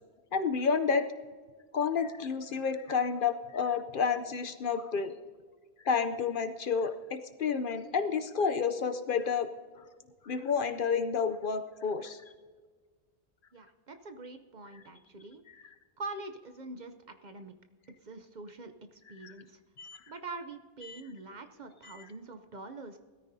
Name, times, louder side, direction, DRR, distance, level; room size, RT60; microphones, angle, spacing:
voice 1, 0.3-1.1 1.7-5.2 5.8-9.5 10.2-12.2 19.2-19.3 19.8-20.0 20.8-21.0 21.8-22.0, left 6 dB, 55° left, 9 dB, 0.7 m, -30 dB
voice 2, 13.5-15.4 16.0-17.6 18.0-19.6 20.1-23.0, right 3 dB, 45° right, 8 dB, 0.7 m, -44 dB
20.0 x 13.5 x 2.7 m, 1.5 s
omnidirectional pair, 1.1 m